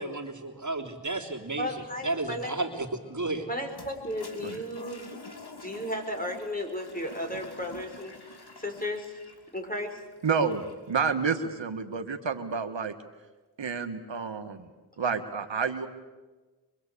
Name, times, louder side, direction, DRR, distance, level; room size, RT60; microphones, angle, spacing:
voice 1, 0.0-1.7 2.0-3.5, right 2 dB, 40° right, 2 dB, 3.3 m, -32 dB
voice 2, 1.6-2.5 3.5-5.1 5.5-8.1 8.6-9.2 9.5-10.0, left 1 dB, 20° left, 3 dB, 5.8 m, -34 dB
Toilet flush, 3.7-10.9, left 3 dB, 60° left, 3.0 m, -48 dB
voice 3, 10.2-12.9 13.6-14.7 15.0-15.9, right 5 dB, 85° right, 7 dB, 1.7 m, -29 dB
24.5 x 23.5 x 8.5 m, 1.3 s
cardioid pair, 45°, 44 cm